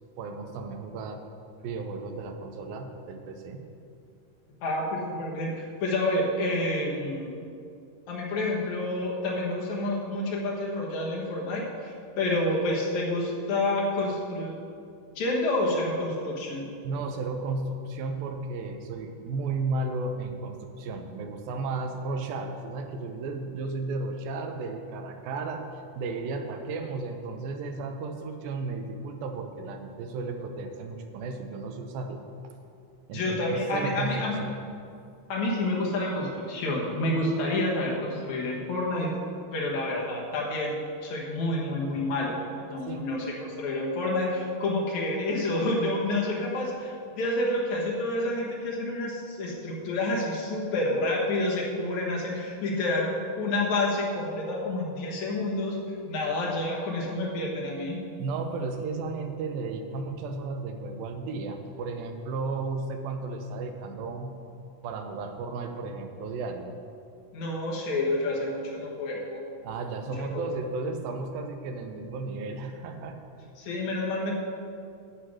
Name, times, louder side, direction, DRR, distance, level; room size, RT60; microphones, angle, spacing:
voice 1, 0.2-1.2 1.6-3.7 16.8-32.2 33.1-34.5 42.9-43.0 58.2-64.4 64.8-66.8 69.6-73.2, right 3 dB, 90° right, 6 dB, 2.6 m, -34 dB
voice 2, 4.6-7.3 8.1-14.5 15.2-16.7 33.1-34.4 35.3-39.1 39.5-53.1 53.4-55.8 56.1-58.0 67.3-69.4 70.3-70.5 73.6-74.3, left 2 dB, 60° left, -3 dB, 2.6 m, -29 dB
8.5 x 7.9 x 6.2 m, 2.5 s
omnidirectional pair, 4.0 m